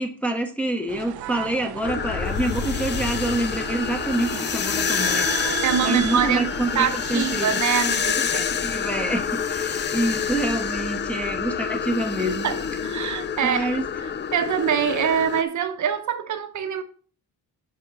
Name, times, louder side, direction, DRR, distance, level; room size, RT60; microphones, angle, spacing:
voice 1, 0.0-5.3 5.8-7.6 8.3-12.5 13.4-13.9, right 1 dB, 5° left, 0.9 m, -27 dB
sound 1, 0.9-7.6, right 16 dB, 75° right, 0.5 m, -34 dB
sound 2, 1.8-15.4, left 7 dB, 30° left, 0.4 m, -27 dB
voice 2, 5.6-6.5 6.7-8.6 12.4-12.6 12.8-16.8, right 8 dB, 50° right, 0.9 m, -25 dB
9.8 x 3.7 x 6.7 m
cardioid pair, 175°, 37 cm